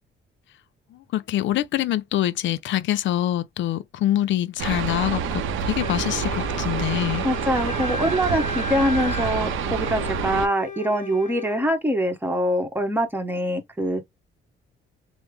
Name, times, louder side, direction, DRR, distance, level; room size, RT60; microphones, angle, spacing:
voice 1, 0.9-7.2, left 13 dB, 70° left, 0.5 m, -25 dB
sound 1, 4.6-10.5, right 6 dB, 85° right, 0.6 m, -27 dB
Wind instrument woodwind instrument, 5.8-11.7, left 3 dB, 40° left, 0.9 m, -35 dB
voice 2, 7.2-14.0, equal, 10° right, 1.0 m, -24 dB
3.2 x 2.0 x 3.1 m
cardioid pair, 90°, 20 cm